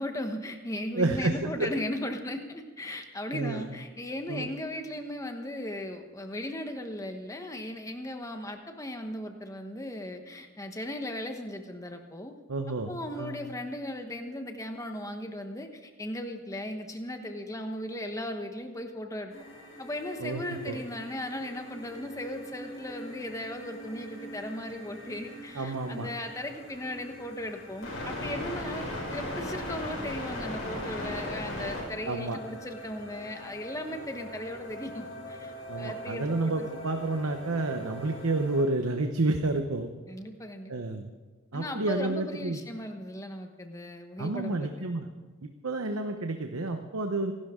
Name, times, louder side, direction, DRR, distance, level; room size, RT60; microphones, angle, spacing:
voice 1, 0.0-12.3 12.9-19.3 19.8-36.7 40.1-40.7 41.5-44.9, left 1 dB, 15° left, 5 dB, 1.1 m, -37 dB
voice 2, 0.9-1.7 3.3-3.6 4.3-4.5 12.5-13.3 20.2-20.8 25.5-26.1 32.0-32.4 35.7-39.9 40.7-41.1 41.5-42.6 44.2-45.1 45.6-47.3, right 2 dB, 85° right, 5 dB, 0.9 m, -30 dB
sound 1, 19.3-38.6, left 1 dB, 65° left, 5.4 m, -40 dB
25.5 x 12.0 x 3.7 m, 1.4 s
head